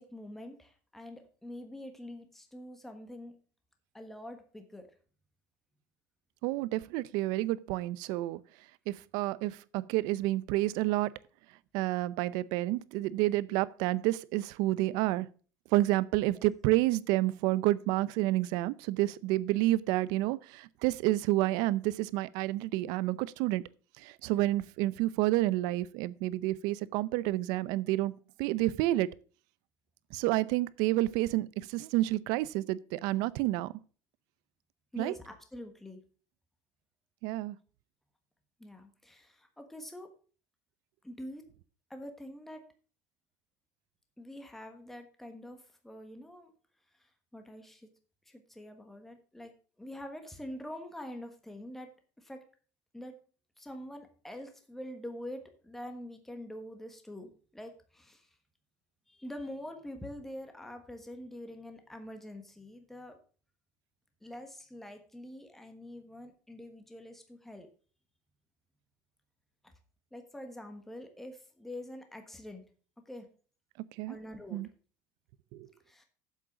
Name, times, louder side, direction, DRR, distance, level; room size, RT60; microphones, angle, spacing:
voice 1, 0.0-3.3 3.9-4.9 16.3-16.4 34.9-36.0 38.6-40.1 41.0-41.5 41.9-42.6 44.2-46.5 47.0-47.9 48.3-49.5 49.8-52.4 52.9-53.2 53.6-58.3 59.1-63.2 64.2-67.7 69.6-69.7 70.1-72.6 73.1-73.3 74.0-74.6 75.9-76.0, left 1 dB, 5° left, 1.3 m, -45 dB
voice 2, 6.4-8.4 8.9-11.1 11.7-15.3 15.7-23.6 24.0-28.1 28.4-29.1 30.1-33.7 35.0-35.1 37.2-37.6 74.0-74.2 74.5-74.7 75.5-75.7, right 17 dB, 70° right, 0.5 m, -29 dB
7.8 x 7.5 x 6.1 m
cardioid pair, 155°, 7 cm